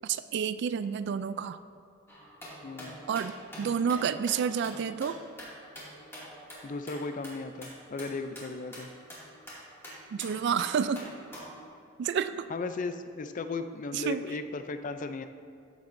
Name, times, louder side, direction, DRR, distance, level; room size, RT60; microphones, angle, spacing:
voice 1, 0.0-1.6 3.1-5.2 10.1-11.1 12.0-12.5 13.9-14.2, right 7 dB, 55° right, 13 dB, 0.3 m, -30 dB
sound 1, 2.1-11.6, equal, 10° left, 2.3 m, -46 dB
voice 2, 2.6-3.0 6.6-8.9 12.5-15.3, left 3 dB, 40° left, 9 dB, 0.4 m, -36 dB
14.0 x 7.3 x 2.6 m, 2.5 s
head